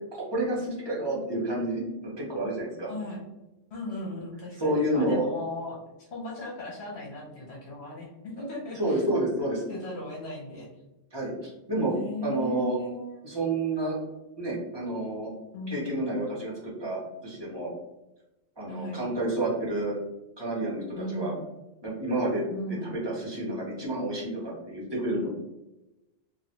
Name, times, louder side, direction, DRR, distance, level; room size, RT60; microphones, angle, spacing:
voice 1, 0.1-2.9 4.6-5.2 8.4-8.5 8.7-9.6 11.1-11.9 12.2-12.8 13.2-14.0 14.4-15.3 15.7-17.7 18.6-19.9 20.4-21.3 21.8-22.4 22.8-25.3, right 1 dB, 25° right, -5 dB, 1.0 m, -29 dB
voice 2, 2.9-3.2 3.7-9.0 9.7-10.7 11.9-13.2 15.5-16.0 18.7-19.1 20.9-21.4 22.5-23.0, left 1 dB, 70° left, -3 dB, 1.0 m, -37 dB
3.2 x 2.5 x 2.7 m, 0.99 s
omnidirectional pair, 1.2 m